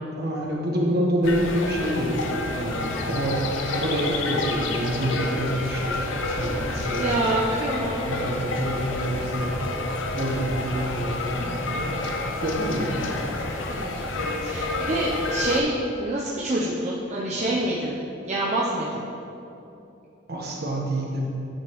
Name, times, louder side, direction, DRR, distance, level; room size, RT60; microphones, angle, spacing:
voice 1, 0.2-3.4 3.7-7.2 8.0-9.6 10.1-11.9 12.4-13.1 20.3-21.3, right 1 dB, 55° right, -2 dB, 1.2 m, -27 dB
sound 1, 1.2-15.6, left 2 dB, 75° left, 0.6 m, -29 dB
voice 2, 6.9-8.1 13.7-14.1 14.4-18.0 18.3-19.0, right 1 dB, 35° right, -5 dB, 0.6 m, -26 dB
10.5 x 5.0 x 3.1 m, 2.9 s
head